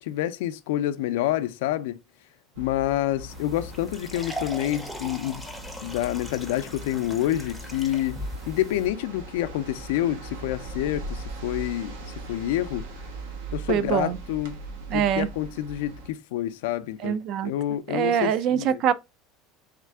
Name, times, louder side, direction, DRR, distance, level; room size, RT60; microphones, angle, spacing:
voice 1, 0.0-2.0 2.6-5.4 5.8-8.2 8.5-12.9 13.5-14.6 14.9-17.2 17.4-18.8, left 13 dB, 90° left, 0.5 m, -28 dB
sound 1, 2.5-16.1, right 2 dB, 85° right, 1.1 m, -39 dB
sound 2, 3.3-8.9, equal, ahead, 0.6 m, -39 dB
voice 2, 13.7-14.2 14.9-15.3 17.0-17.5 17.9-18.9, right 9 dB, 45° right, 0.4 m, -24 dB
3.6 x 3.3 x 3.5 m
cardioid pair, 160°, 0 cm